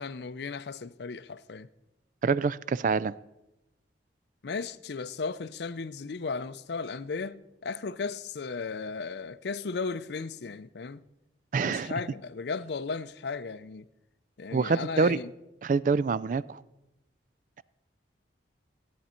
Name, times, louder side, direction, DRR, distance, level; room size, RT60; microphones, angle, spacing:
voice 1, 0.0-1.7 4.4-11.0 11.6-13.8 14.4-15.3, left 4 dB, 60° left, 0.5 m, -35 dB
voice 2, 2.2-3.1 11.5-11.9 14.5-15.2 15.6-16.6, right 4 dB, 45° right, 0.3 m, -26 dB
16.5 x 9.4 x 4.3 m
head